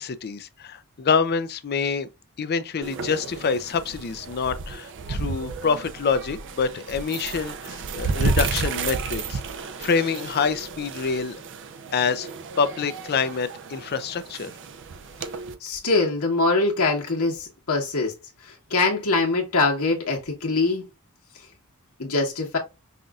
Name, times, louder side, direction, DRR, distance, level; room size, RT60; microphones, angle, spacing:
voice 1, 0.0-2.1 2.4-9.4 9.8-11.4 11.9-12.3 12.6-14.5, left 5 dB, 45° left, 0.5 m, -26 dB
sound 1, 2.8-15.5, right 4 dB, 55° right, 0.6 m, -32 dB
voice 2, 15.6-18.1 18.4-20.8 22.0-22.6, left 3 dB, 70° left, 1.3 m, -23 dB
5.6 x 2.6 x 2.3 m
head